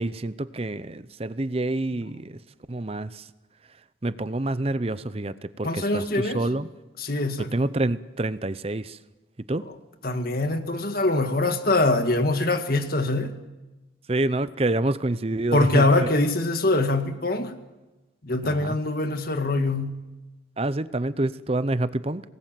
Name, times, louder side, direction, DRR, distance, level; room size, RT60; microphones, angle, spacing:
voice 1, 0.0-2.4 2.7-3.2 4.0-6.7 7.5-9.0 9.5-9.6 14.1-16.1 18.4-18.8 20.6-22.2, right 2 dB, 30° right, 0.7 m, -27 dB
voice 2, 5.6-6.4 7.0-7.5 9.6-9.7 10.0-13.3 15.5-17.5 18.2-20.0, left 2 dB, 50° left, 1.9 m, -23 dB
26.5 x 20.0 x 7.6 m
head